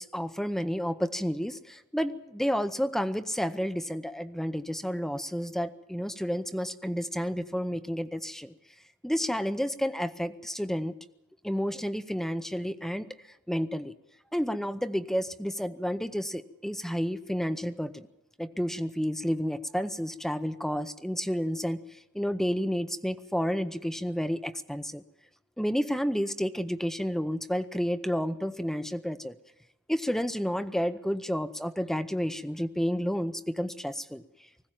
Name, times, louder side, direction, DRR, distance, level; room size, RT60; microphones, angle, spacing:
voice 1, 0.0-8.5 9.0-10.9 11.4-13.1 13.5-13.9 14.3-18.1 18.4-25.0 25.6-29.4 29.9-34.2, equal, ahead, 10 dB, 0.7 m, -30 dB
20.0 x 16.0 x 8.9 m, 0.91 s
head